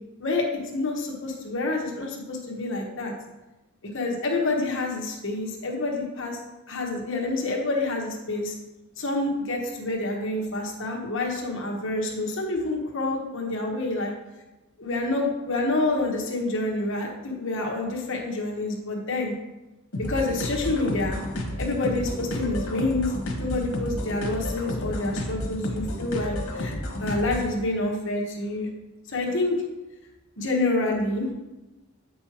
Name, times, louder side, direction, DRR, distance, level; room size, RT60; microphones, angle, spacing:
voice 1, 0.2-3.1 3.9-6.4 6.7-8.5 9.0-14.1 14.8-19.3 20.0-21.2 21.6-23.1 23.4-26.7 27.0-28.7 29.1-29.6 30.4-31.3, left 2 dB, 60° left, 0 dB, 1.2 m, -27 dB
sound 1, 19.9-27.5, left 1 dB, 85° left, 1.2 m, -31 dB
8.0 x 5.4 x 2.9 m, 1.1 s
head